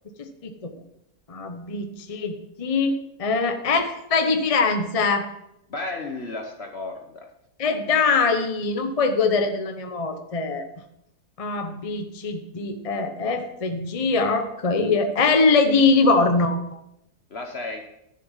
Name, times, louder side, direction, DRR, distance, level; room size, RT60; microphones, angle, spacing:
voice 1, 0.2-0.7 1.3-2.9 3.2-5.2 7.6-10.7 11.4-16.8, left 4 dB, 30° left, 6 dB, 0.8 m, -22 dB
voice 2, 5.7-7.3 17.3-17.9, left 2 dB, 45° left, 3 dB, 1.1 m, -33 dB
11.5 x 7.2 x 5.5 m, 0.83 s
omnidirectional pair, 1.6 m